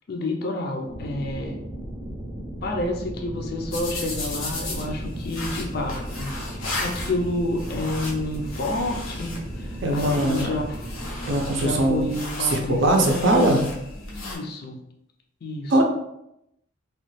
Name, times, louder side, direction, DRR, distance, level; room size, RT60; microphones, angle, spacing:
voice 1, 0.1-1.6 2.6-10.9 11.6-13.5 14.1-14.8 15.4-15.7, left 1 dB, 50° left, 2 dB, 0.4 m, -29 dB
sound 1, 0.9-12.1, right 1 dB, 10° right, 0.5 m, -36 dB
sound 2, 3.7-14.4, left 2 dB, 90° left, 0.8 m, -35 dB
voice 2, 9.8-10.5 11.2-12.0 12.4-13.6 15.7-15.9, right 1 dB, 65° right, 2 dB, 0.5 m, -21 dB
3.0 x 2.3 x 3.1 m, 0.81 s
head